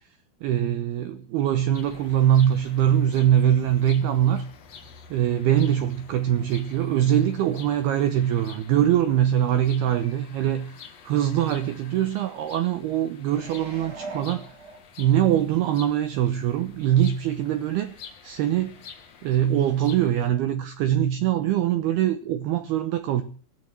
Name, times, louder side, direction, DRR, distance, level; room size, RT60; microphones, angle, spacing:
voice 1, 0.4-4.5 5.1-14.5 15.0-18.8 19.2-23.2, right 11 dB, 90° right, 2.2 m, -23 dB
sound 1, 1.7-20.3, left 6 dB, 65° left, 1.6 m, -48 dB
sound 2, 13.3-15.3 15.8-15.9, right 3 dB, 35° right, 1.8 m, -41 dB
17.5 x 12.0 x 6.0 m
omnidirectional pair, 6.0 m